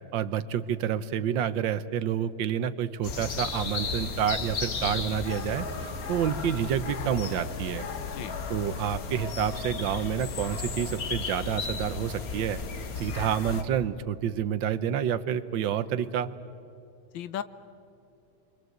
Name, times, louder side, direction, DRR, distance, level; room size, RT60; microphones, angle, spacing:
voice 1, 0.1-7.9 8.5-12.6 13.0-16.3, right 9 dB, 90° right, 13 dB, 1.6 m, -29 dB
sound 1, 3.0-13.6, left 5 dB, 55° left, 1.7 m, -34 dB
voice 2, 8.0-8.3 17.1-17.4, left 10 dB, 85° left, 13 dB, 1.6 m, -36 dB
29.0 x 23.5 x 7.9 m, 2.6 s
omnidirectional pair, 2.0 m